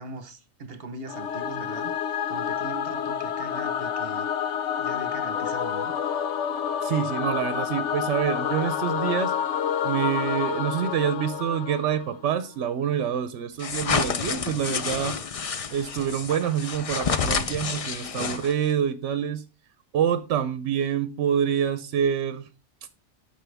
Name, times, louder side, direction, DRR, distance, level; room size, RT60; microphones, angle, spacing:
voice 1, 0.0-1.9 2.3-4.3 4.8-5.9, right 3 dB, 55° right, 1.2 m, -40 dB
Singing / Musical instrument, 1.1-12.4, left 8 dB, 80° left, 1.0 m, -29 dB
voice 2, 6.8-9.3 9.8-15.2 15.7-19.4 19.9-22.5, right 9 dB, 75° right, 0.9 m, -26 dB
sound 1, 13.6-18.7, left 6 dB, 45° left, 0.5 m, -29 dB
12.5 x 4.8 x 3.4 m
omnidirectional pair, 1.2 m